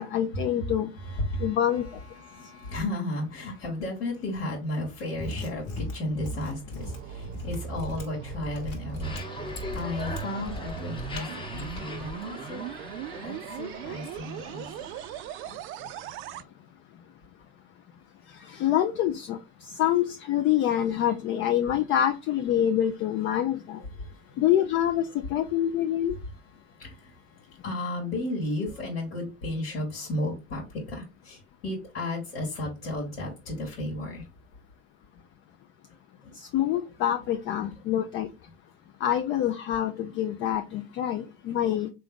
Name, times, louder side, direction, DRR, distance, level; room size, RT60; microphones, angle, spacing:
voice 1, 0.0-0.9 1.4-1.8 18.4-23.8 24.4-26.1 36.3-38.3 39.0-41.9, left 11 dB, 40° left, 0.4 m, -26 dB
voice 2, 1.0-12.6 13.2-14.8 23.9-24.4 26.6-34.2 36.2-36.3 37.6-37.7 41.5-41.6, left 1 dB, 80° left, 1.5 m, -34 dB
Mechanisms, 5.1-12.3, left 2 dB, 60° left, 1.4 m, -38 dB
sound 1, 6.3-16.4, right 11 dB, 45° right, 0.4 m, -39 dB
sound 2, 9.0-15.6, left 1 dB, 15° left, 0.9 m, -41 dB
3.3 x 2.6 x 3.6 m
hypercardioid pair, 90°, 29 cm